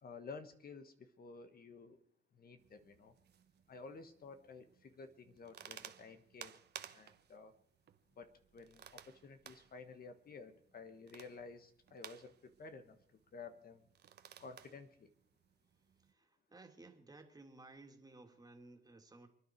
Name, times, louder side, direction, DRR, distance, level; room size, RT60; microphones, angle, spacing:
voice 1, 0.0-2.0 2.4-3.1 3.7-6.5 6.9-7.5 8.2-12.3 12.6-13.0 13.3-13.8 14.4-14.9, left 4 dB, 50° left, 9 dB, 1.4 m, -52 dB
sound 1, 2.6-16.1, right 9 dB, 55° right, 1.2 m, -58 dB
voice 2, 16.0-19.3, right 2 dB, 20° right, 4 dB, 2.6 m, -57 dB
29.0 x 10.0 x 4.6 m, 0.69 s
cardioid pair, 90°, 20 cm